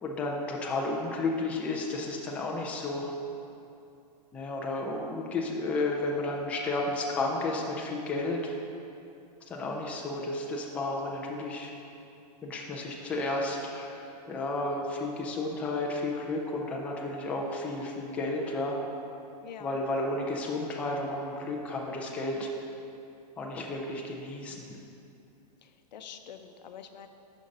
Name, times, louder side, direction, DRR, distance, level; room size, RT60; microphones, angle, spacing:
voice 1, 0.0-3.2 4.3-8.5 9.5-11.7 12.4-18.8 19.6-22.5 23.4-24.8, left 2 dB, 5° left, -1 dB, 0.4 m, -32 dB
voice 2, 19.4-19.8 25.6-27.1, left 7 dB, 90° left, 8 dB, 0.6 m, -46 dB
6.6 x 5.3 x 5.1 m, 2.7 s
hypercardioid pair, 160°, 21 cm